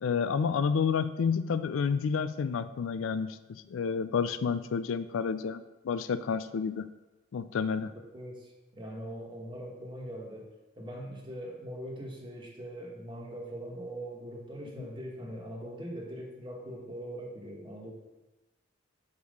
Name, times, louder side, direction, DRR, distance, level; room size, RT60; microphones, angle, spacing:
voice 1, 0.0-6.9 7.3-7.9 14.8-14.9, left 6 dB, 90° left, 13 dB, 0.4 m, -30 dB
voice 2, 8.1-10.5 10.8-17.9, equal, 25° right, -1 dB, 1.2 m, -41 dB
5.3 x 4.8 x 6.4 m, 1.1 s
head